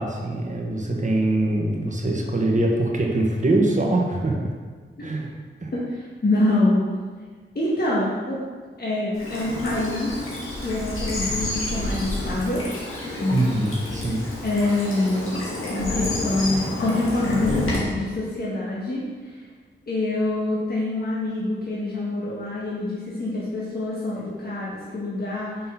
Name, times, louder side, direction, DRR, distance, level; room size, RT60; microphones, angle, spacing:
voice 1, 0.0-4.4 5.0-5.3 5.6-5.7 13.3-14.2, right 2 dB, 35° right, -1 dB, 1.3 m, -23 dB
voice 2, 5.7-6.8 7.6-8.4 8.8-10.2 10.6-12.7 13.2-13.5 14.4-19.4 19.9-25.6, left 2 dB, 50° left, -8 dB, 1.6 m, -25 dB
Bird vocalization bird call bird song / Stream, 9.1-17.8, left 2 dB, 85° left, 1.8 m, -29 dB
5.9 x 4.2 x 5.7 m, 1.5 s
cardioid pair, 60°, 21 cm